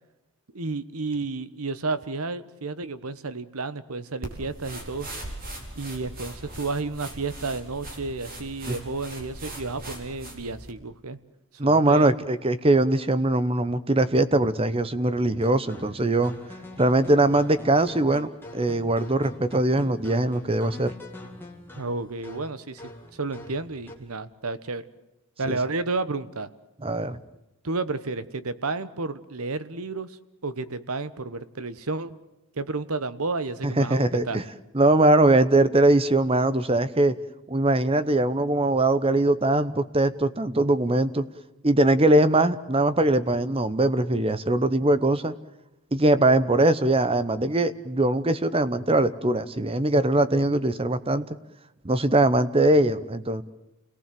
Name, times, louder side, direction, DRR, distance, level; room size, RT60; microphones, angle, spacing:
voice 1, 0.5-5.1 5.8-11.2 11.6-12.1 21.8-22.8 23.1-24.8 25.4-26.5 27.6-32.2 32.5-34.4, right 3 dB, 75° right, 14 dB, 1.1 m, -31 dB
sound 1, 4.2-10.7, right 1 dB, 40° right, 4.4 m, -40 dB
voice 2, 11.6-16.3 16.8-20.9 25.5-25.6 26.8-27.2 33.6-34.4 34.7-37.1 37.5-41.2 41.6-45.3 45.9-51.3 51.8-53.4, right 2 dB, 25° right, 14 dB, 0.9 m, -21 dB
sound 2, 15.4-24.1, left 1 dB, 10° left, 2.5 m, -44 dB
29.0 x 18.5 x 7.7 m, 0.94 s
head